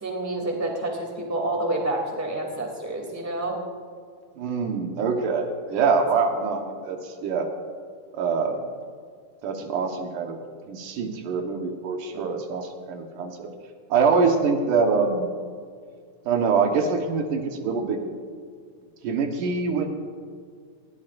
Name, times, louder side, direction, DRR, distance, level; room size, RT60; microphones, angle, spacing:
voice 1, 0.0-3.6, right 2 dB, 5° right, 0 dB, 2.3 m, -28 dB
voice 2, 4.4-7.5 8.2-8.6 9.4-10.4 10.7-13.5 13.9-15.3 16.3-18.0 19.0-19.9, right 5 dB, 85° right, 3 dB, 2.9 m, -24 dB
20.5 x 16.5 x 2.6 m, 2.1 s
omnidirectional pair, 3.6 m